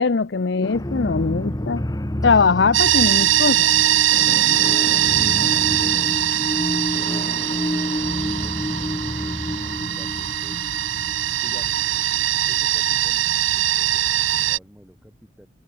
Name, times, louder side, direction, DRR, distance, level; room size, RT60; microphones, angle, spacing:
voice 1, 0.0-1.8 2.2-3.7, left 4 dB, 60° left, 0.6 m, -20 dB
sound 1, 0.6-13.1, left 1 dB, 20° left, 1.1 m, -29 dB
sound 2, 2.7-14.6, right 12 dB, 75° right, 1.0 m, -21 dB
voice 2, 4.5-5.1 5.8-6.1 6.4-10.6 11.4-11.8 12.5-15.5, equal, 5° right, 7.3 m, -50 dB
head